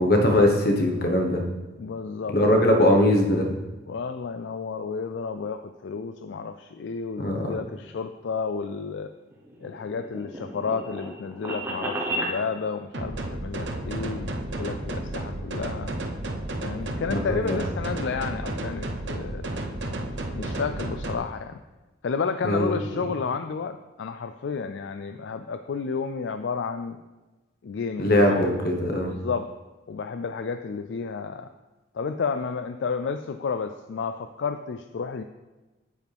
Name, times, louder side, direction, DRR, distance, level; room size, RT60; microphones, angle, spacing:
voice 1, 0.0-1.4 2.3-3.5 7.2-7.5 17.1-17.6 22.4-22.8 28.0-29.1, left 1 dB, 50° left, 2 dB, 1.3 m, -21 dB
voice 2, 1.8-2.4 3.9-9.1 9.6-15.9 16.6-19.6 20.3-21.6 22.0-27.0 27.6-28.6 29.1-29.5 29.9-31.5 31.9-35.2, left 5 dB, 70° left, 9 dB, 0.4 m, -31 dB
sound 1, 9.3-12.4, right 1 dB, 15° right, 1.2 m, -32 dB
sound 2, 12.9-21.1, right 1 dB, 70° right, 0.8 m, -32 dB
9.0 x 8.2 x 3.5 m, 1.2 s
head